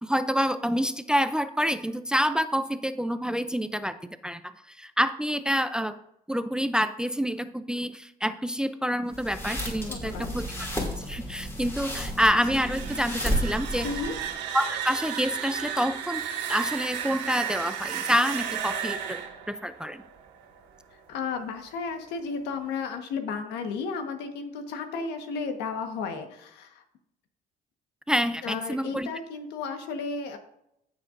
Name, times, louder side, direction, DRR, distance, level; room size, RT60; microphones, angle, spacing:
voice 1, 0.0-4.0 4.2-6.0 6.3-10.7 11.1-13.9 14.5-16.2 16.5-19.2 19.5-20.0 28.1-29.1, equal, 5° right, 11 dB, 0.5 m, -27 dB
sound 1, 9.1-14.4, equal, 15° left, 2.7 m, -32 dB
voice 2, 9.9-10.3 13.8-14.1 21.1-26.8 28.4-30.4, left 5 dB, 85° left, 6 dB, 1.4 m, -33 dB
sound 2, 12.3-21.1, right 8 dB, 90° right, 2.0 m, -34 dB
15.5 x 6.8 x 2.6 m, 0.79 s
cardioid pair, 110°, 17 cm